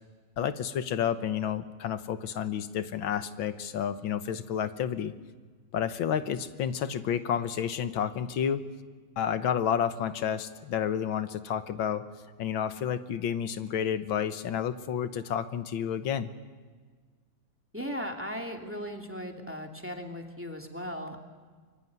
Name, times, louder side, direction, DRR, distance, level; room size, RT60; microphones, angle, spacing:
voice 1, 0.4-5.1 5.7-8.7 9.2-12.0 12.4-16.3, left 8 dB, 85° left, 11 dB, 1.8 m, -30 dB
voice 2, 17.7-21.2, equal, 5° right, 2 dB, 2.7 m, -37 dB
25.5 x 24.0 x 9.6 m, 1.5 s
omnidirectional pair, 2.1 m